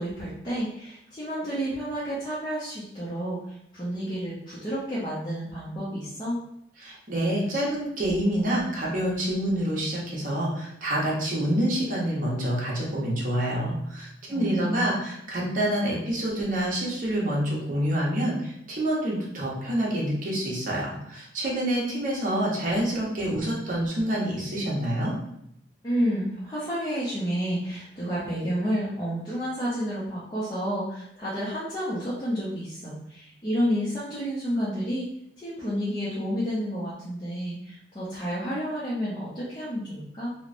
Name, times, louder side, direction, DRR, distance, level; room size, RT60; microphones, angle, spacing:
voice 1, 0.0-6.4 14.3-14.9 25.8-35.1 35.4-40.3, equal, 25° left, -9 dB, 0.5 m, -30 dB
voice 2, 6.8-25.1, right 1 dB, 45° right, -4 dB, 0.8 m, -27 dB
2.9 x 2.0 x 2.5 m, 0.75 s
head